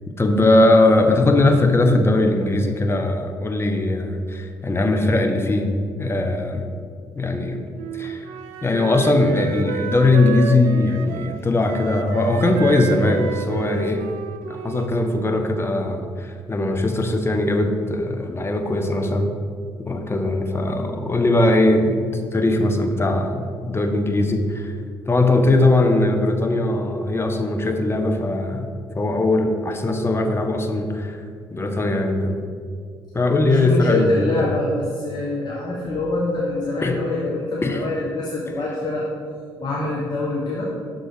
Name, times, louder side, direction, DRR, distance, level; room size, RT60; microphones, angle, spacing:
voice 1, 0.2-5.7 6.0-6.7 7.2-7.6 7.9-8.2 8.6-14.1 14.6-19.3 19.9-22.0 22.3-24.7 25.1-28.7 28.9-31.2 31.5-32.4 33.1-34.4 36.8-37.0 37.6-37.8, left 2 dB, 20° left, 5 dB, 0.8 m, -20 dB
Wind instrument woodwind instrument, 7.7-15.5, right 7 dB, 65° right, 0.4 m, -30 dB
voice 2, 33.4-39.0 39.6-40.7, left 2 dB, 35° left, -4 dB, 1.1 m, -25 dB
6.2 x 3.9 x 4.8 m, 2.1 s
figure-of-eight pair, 45°, 11 cm